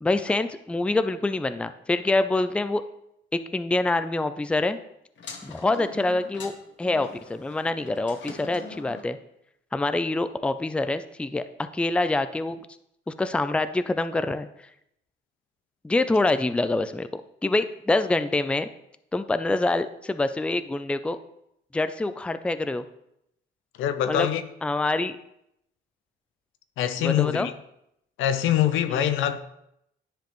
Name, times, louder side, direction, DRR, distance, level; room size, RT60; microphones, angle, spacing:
voice 1, 0.0-2.8 3.3-4.8 5.4-9.2 9.7-12.6 13.1-14.5 15.8-18.7 19.1-21.2 21.7-22.8 24.1-24.3 24.6-25.2 27.0-27.5 28.9-29.0, left 2 dB, 5° left, 0.4 m, -26 dB
sound 1, 5.2-9.1, left 4 dB, 70° left, 1.1 m, -43 dB
voice 2, 23.8-24.4 26.8-27.5 28.2-29.4, left 11 dB, 85° left, 0.6 m, -24 dB
10.0 x 5.1 x 3.0 m
cardioid pair, 90°, 20 cm